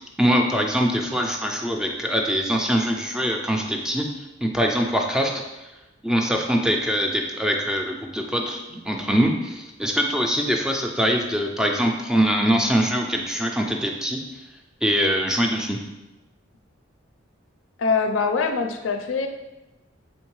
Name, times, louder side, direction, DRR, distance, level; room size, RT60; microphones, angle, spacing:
voice 1, 0.2-4.1 4.4-5.3 6.0-14.2 14.8-15.8, equal, 5° right, 2 dB, 0.3 m, -23 dB
voice 2, 17.8-19.3, left 4 dB, 90° left, 5 dB, 0.4 m, -23 dB
3.6 x 3.5 x 3.0 m, 1.0 s
head